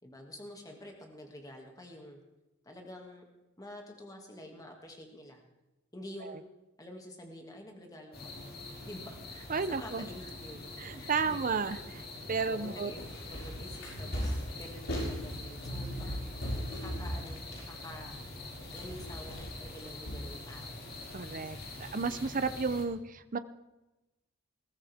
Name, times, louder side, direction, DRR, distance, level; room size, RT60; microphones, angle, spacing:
voice 1, 0.0-2.2 2.6-3.2 3.6-5.4 5.9-6.4 6.8-8.5 8.8-11.9 12.5-13.0 13.3-16.2 16.7-20.8 22.5-22.6, left 1 dB, 15° left, 2 dB, 2.4 m, -48 dB
sound 1, 8.1-22.8, left 2 dB, 45° left, 3.0 m, -45 dB
voice 2, 9.5-10.1 10.8-12.0 12.3-12.9 21.1-23.4, right 5 dB, 40° right, 12 dB, 0.7 m, -32 dB
sound 2, 12.9-18.5 18.7-20.8 21.3-22.5, equal, 65° left, 6.4 m, -39 dB
20.5 x 14.5 x 3.7 m, 1.0 s
head